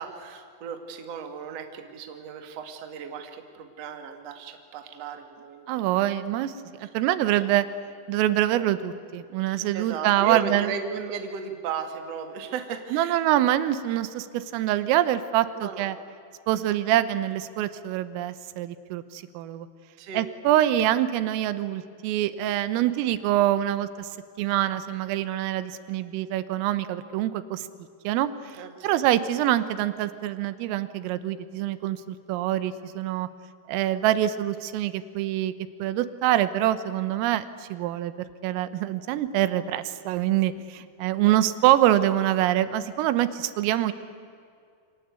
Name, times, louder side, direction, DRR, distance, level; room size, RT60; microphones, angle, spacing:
voice 1, 0.0-6.2 6.8-6.9 7.3-7.5 9.5-13.2 15.5-15.9 20.0-20.3 28.5-29.0, right 6 dB, 50° right, 6 dB, 2.1 m, -36 dB
voice 2, 5.7-6.5 6.8-7.7 8.1-10.7 12.9-16.0 16.5-19.7 20.2-24.1 24.4-27.7 28.1-28.6 28.8-33.3 33.7-35.5 35.8-38.1 38.4-43.9, right 13 dB, 90° right, 13 dB, 3.7 m, -25 dB
28.5 x 25.0 x 8.3 m, 2.3 s
omnidirectional pair, 5.8 m